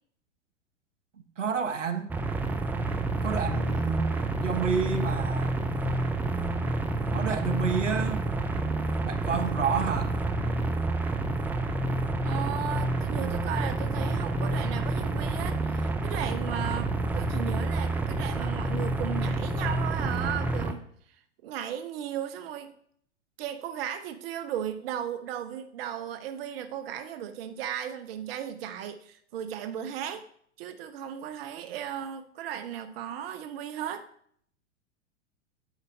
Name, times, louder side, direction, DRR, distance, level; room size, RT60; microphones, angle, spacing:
voice 1, 1.4-2.1 3.2-5.8 7.1-8.3 9.0-10.2, right 6 dB, 85° right, 1.0 m, -30 dB
Sci-Fi Engine Loop, 2.1-20.7, right 2 dB, 5° right, 0.4 m, -29 dB
voice 2, 12.2-20.8 21.1-22.7 23.4-30.3 30.6-34.1, right 9 dB, 55° right, 0.7 m, -36 dB
9.0 x 4.1 x 5.2 m
figure-of-eight pair, 100°, 36 cm